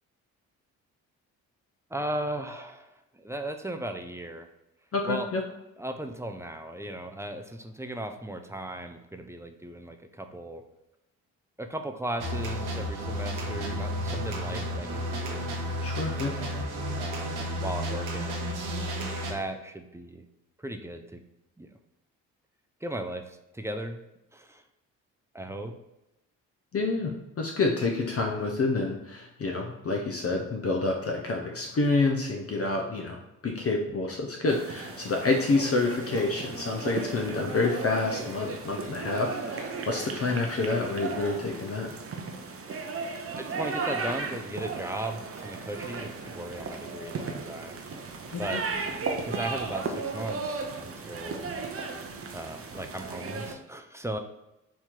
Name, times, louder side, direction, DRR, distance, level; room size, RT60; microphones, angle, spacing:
voice 1, 1.9-4.5 5.1-5.3 5.8-10.6 11.6-15.5 16.2-16.6 16.9-18.7 19.3-20.2 20.6-21.2 21.6-21.7 22.8-24.0 24.3-24.6 25.3-25.7 43.4-47.8 48.4-48.6 49.2-51.4 52.3-54.2, right 1 dB, 5° right, 5 dB, 0.5 m, -37 dB
voice 2, 4.9-5.4 15.8-16.3 26.7-27.1 27.4-41.9 48.3-48.6, left 3 dB, 35° left, 1 dB, 0.8 m, -28 dB
sound 1, 12.2-19.3, equal, 65° right, 1.1 m, -32 dB
sound 2, 34.5-53.5, right 4 dB, 35° right, 0.7 m, -36 dB
4.3 x 2.9 x 3.7 m, 0.92 s
hypercardioid pair, 45°, 42 cm